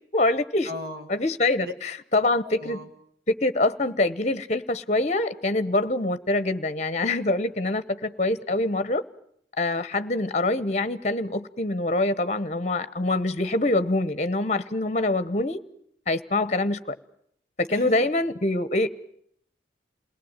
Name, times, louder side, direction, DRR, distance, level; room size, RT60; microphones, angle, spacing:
voice 1, 0.1-0.7 1.1-2.8 3.4-9.0 9.6-15.6 16.1-16.9 17.6-18.9, left 2 dB, 35° left, 1.0 m, -25 dB
voice 2, 0.7-1.0 1.6-1.7 2.4-2.9 17.7-17.8, left 2 dB, 55° right, 2.0 m, -36 dB
28.5 x 18.5 x 8.9 m
head